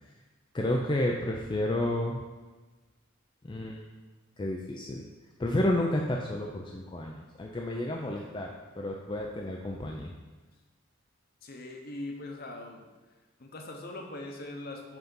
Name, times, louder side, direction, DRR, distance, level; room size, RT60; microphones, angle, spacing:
voice 1, 0.5-2.2 3.4-3.9 4.4-5.0 5.4-10.1, left 1 dB, 20° left, -1 dB, 0.4 m, -31 dB
voice 2, 11.4-12.8 13.4-15.0, left 2 dB, 45° left, 2 dB, 0.8 m, -41 dB
5.8 x 3.9 x 5.4 m, 1.3 s
head